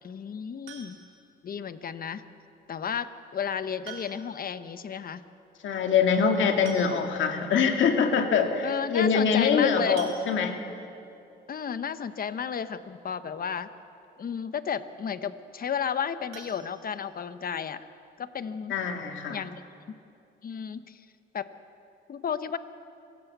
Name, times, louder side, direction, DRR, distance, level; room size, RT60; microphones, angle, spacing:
voice 1, 0.0-1.0 1.4-2.2 2.7-5.2 8.6-10.0 11.5-13.7 14.2-17.8 18.2-18.8 19.3-19.6 19.9-20.0 20.4-21.0 21.3-21.5 22.1-22.6, left 7 dB, 45° left, 11 dB, 1.1 m, -33 dB
sound 1, 0.7-1.3 2.8-2.9 3.8-4.5 4.8-4.9 5.2-5.3 6.3-6.4 6.7-7.4 7.9-8.0 8.4-8.5 10.0-10.8 16.3-17.5 17.9-18.0 18.4-18.5 18.9-19.0, right 6 dB, 80° right, 3.2 m, -47 dB
voice 2, 5.6-10.6 18.7-19.4, left 6 dB, 75° left, 4 dB, 2.0 m, -24 dB
25.0 x 16.0 x 8.2 m, 2.7 s
cardioid pair, 90°, 20 cm